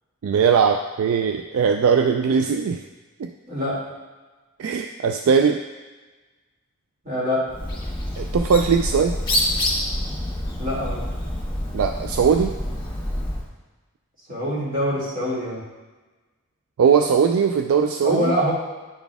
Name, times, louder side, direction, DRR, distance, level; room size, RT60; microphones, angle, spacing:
voice 1, 0.2-2.8 3.2-3.3 4.6-5.6 8.2-9.1 11.7-12.5 16.8-18.3, right 6 dB, 70° right, 5 dB, 0.3 m, -19 dB
voice 2, 3.5-3.8 7.0-7.5 10.6-11.0 14.3-15.6 18.0-18.5, equal, 40° right, -7 dB, 2.3 m, -24 dB
Bird, 7.5-13.5, left 1 dB, 20° left, 1.6 m, -27 dB
9.8 x 4.1 x 3.5 m, 1.3 s
head